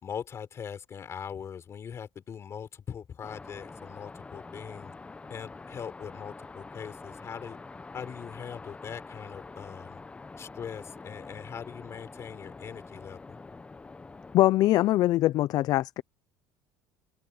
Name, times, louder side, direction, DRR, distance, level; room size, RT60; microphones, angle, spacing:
voice 1, 0.0-4.9 5.3-7.6 7.9-10.0 10.4-13.4, left 7 dB, 35° left, 4.4 m, -41 dB
sound 1, 3.2-14.4, left 3 dB, 15° left, 0.8 m, -46 dB
voice 2, 14.3-16.0, left 15 dB, 50° left, 0.4 m, -22 dB
open air
cardioid pair, 135°, 8 cm